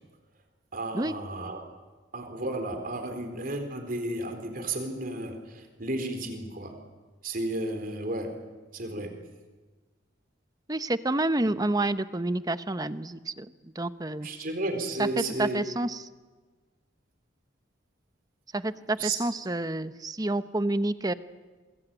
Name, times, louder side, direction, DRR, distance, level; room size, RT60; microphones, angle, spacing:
voice 1, 0.7-1.6 2.1-6.7 7.2-8.4 8.7-9.2 14.2-15.7 19.0-19.2, right 2 dB, 45° right, 6 dB, 4.0 m, -33 dB
voice 2, 10.7-13.5 13.8-14.3 15.0-16.0 18.5-21.1, right 2 dB, 20° right, 12 dB, 0.8 m, -29 dB
27.0 x 22.5 x 9.1 m, 1.3 s
head